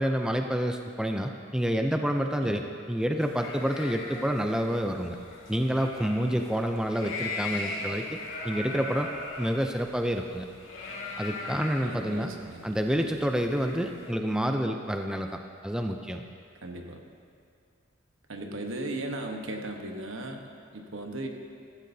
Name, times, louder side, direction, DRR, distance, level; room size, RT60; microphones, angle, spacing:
voice 1, 0.0-2.6 2.9-5.2 5.5-8.2 8.4-10.5 11.2-12.3 12.6-16.2, equal, 5° right, 4 dB, 0.4 m, -28 dB
sound 1, 3.2-14.1, left 3 dB, 70° left, 2.1 m, -40 dB
voice 2, 11.8-12.7 16.6-17.0 18.3-21.3, right 1 dB, 70° right, 3 dB, 1.2 m, -37 dB
15.0 x 14.0 x 2.7 m, 2.3 s
head